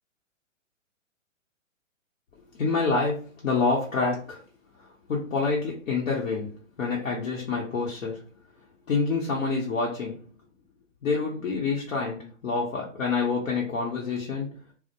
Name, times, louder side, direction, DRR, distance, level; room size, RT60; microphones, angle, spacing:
voice 1, 2.5-4.4 4.8-8.3 8.9-10.3 11.0-14.6, left 4 dB, 70° left, 0.9 m, -27 dB
2.2 x 2.0 x 2.8 m
hypercardioid pair, 130°, 39 cm